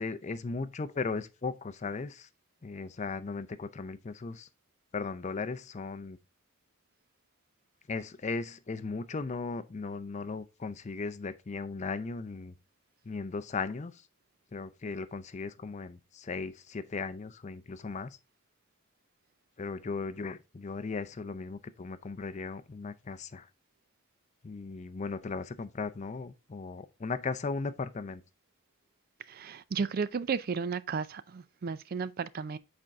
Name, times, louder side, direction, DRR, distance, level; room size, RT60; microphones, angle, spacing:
voice 1, 0.0-2.3 2.6-4.5 4.9-6.2 7.9-12.5 13.1-13.9 14.5-18.2 19.6-23.4 24.4-28.2, left 4 dB, 35° left, 0.4 m, -37 dB
voice 2, 29.3-32.6, right 5 dB, 45° right, 0.4 m, -33 dB
7.6 x 4.4 x 3.5 m
head